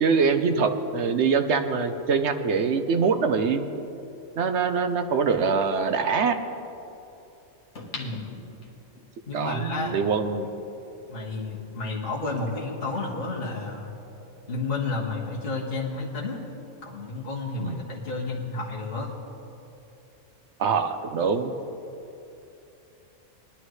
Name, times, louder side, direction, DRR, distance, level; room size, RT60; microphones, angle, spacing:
voice 1, 0.0-3.6 4.4-6.4 9.3-10.5 17.6-17.8 20.6-21.5, right 5 dB, 65° right, 8 dB, 1.0 m, -24 dB
sound 1, 7.8-9.1 9.6-9.7, left 3 dB, 65° left, 1.6 m, -40 dB
voice 2, 7.9-8.3 9.3-10.0 11.1-13.9 14.5-16.4 16.8-19.1, left 3 dB, 50° left, -5 dB, 1.8 m, -31 dB
sound 2, 10.8-11.5 11.8-13.8 14.1-16.3, right 1 dB, 25° right, 2.8 m, -48 dB
20.5 x 11.5 x 3.2 m, 2.8 s
omnidirectional pair, 1.3 m